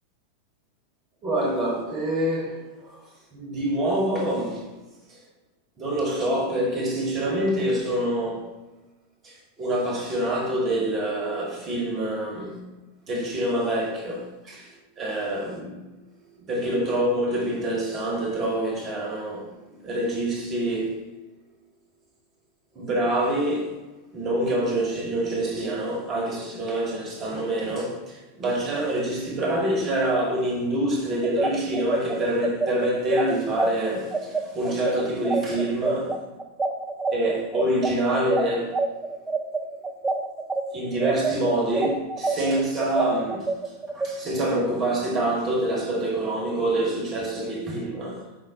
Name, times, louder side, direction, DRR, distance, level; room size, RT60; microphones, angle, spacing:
voice 1, 1.2-3.0 3.3-4.7 5.1-5.2 5.8-8.5 9.2-12.6 13.1-15.8 16.4-21.0 22.7-23.8 24.1-36.2 37.1-38.8 40.7-43.6 43.9-48.2, right 1 dB, 25° right, 1.2 m, -26 dB
sound 1, 31.2-40.6 41.0-44.1, right 3 dB, 10° right, 0.3 m, -27 dB
4.6 x 3.7 x 2.8 m
figure-of-eight pair, 90°, 0 cm